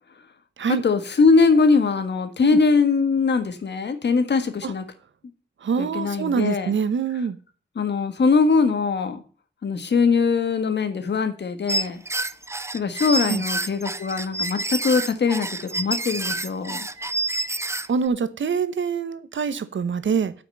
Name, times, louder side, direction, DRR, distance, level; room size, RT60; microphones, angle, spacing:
voice 1, 0.7-4.8 5.8-6.7 7.7-9.2 9.6-12.0 12.7-15.5 15.7-16.9, left 4 dB, 65° left, 9 dB, 1.6 m, -21 dB
voice 2, 5.6-7.4 13.3-13.4 17.9-20.3, right 6 dB, 80° right, 13 dB, 1.0 m, -25 dB
sound 1, 11.7-18.0, right 2 dB, 15° right, 0.6 m, -28 dB
8.9 x 6.0 x 6.9 m, 0.41 s
wide cardioid pair, 135°, 19 cm